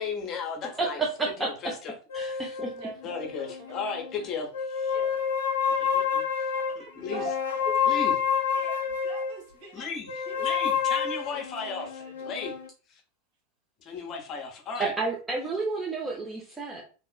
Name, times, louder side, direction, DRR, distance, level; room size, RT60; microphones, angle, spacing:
voice 1, 0.0-1.0 1.4-1.9 2.3-2.6 3.0-4.9 5.6-6.5 6.8-7.2 7.9-8.1 9.7-12.5 12.9-13.0 13.8-14.9, left 5 dB, 40° left, 2 dB, 0.8 m, -35 dB
voice 2, 0.8-1.5 2.1-2.7 14.8-16.8, right 3 dB, 15° right, -2 dB, 0.6 m, -30 dB
sound 1, 2.1-4.1 4.5-9.4 10.1-12.7, left 7 dB, 75° left, 0.4 m, -28 dB
voice 3, 2.7-3.7 4.9-5.1 5.8-5.9 6.5-7.3 7.6-8.1 8.5-9.9 10.2-10.5 11.3-12.1 13.9-14.0, right 2 dB, 55° right, -2 dB, 1.3 m, -43 dB
2.9 x 2.4 x 2.3 m, 0.36 s
figure-of-eight pair, 90°, 0 cm